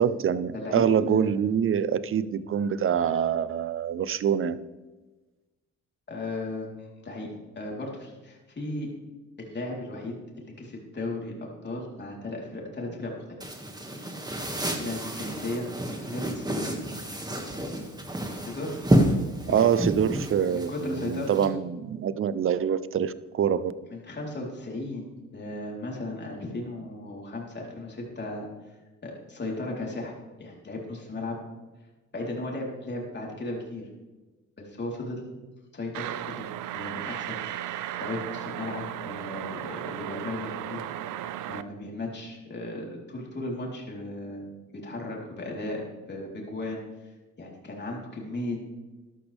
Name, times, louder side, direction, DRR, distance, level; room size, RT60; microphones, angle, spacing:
voice 1, 0.0-4.6 19.5-23.7, right 8 dB, 45° right, 16 dB, 0.7 m, -25 dB
voice 2, 0.5-1.3 6.1-7.3 7.6-8.9 9.4-13.2 14.8-15.7 16.1-16.8 18.5-18.9 19.5-19.8 20.5-21.5 23.9-28.5 29.0-30.1 30.4-31.4 32.1-33.9 34.6-35.2 35.7-40.8 41.5-45.8 46.1-47.1 47.4-48.6, left 2 dB, 35° left, -2 dB, 3.9 m, -36 dB
sound 1, 13.4-21.5, right 1 dB, 15° right, 2.1 m, -29 dB
sound 2, 35.9-41.6, right 12 dB, 85° right, 0.6 m, -35 dB
13.5 x 11.5 x 3.5 m, 1.2 s
cardioid pair, 90°, 30 cm